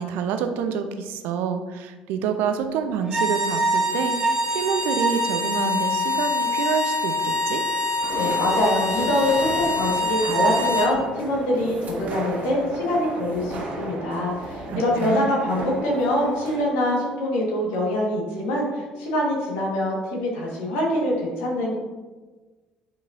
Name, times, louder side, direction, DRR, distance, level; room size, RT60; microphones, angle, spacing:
voice 1, 0.0-7.6 14.7-15.3, right 7 dB, 60° right, 7 dB, 0.6 m, -27 dB
sound 1, 3.0-10.9, left 1 dB, 20° right, 1.5 m, -24 dB
sound 2, 8.0-16.6, right 2 dB, 40° right, 1.7 m, -34 dB
voice 2, 8.1-21.7, left 1 dB, 65° left, -2 dB, 1.6 m, -24 dB
9.0 x 4.9 x 2.7 m, 1.3 s
figure-of-eight pair, 55°, 4 cm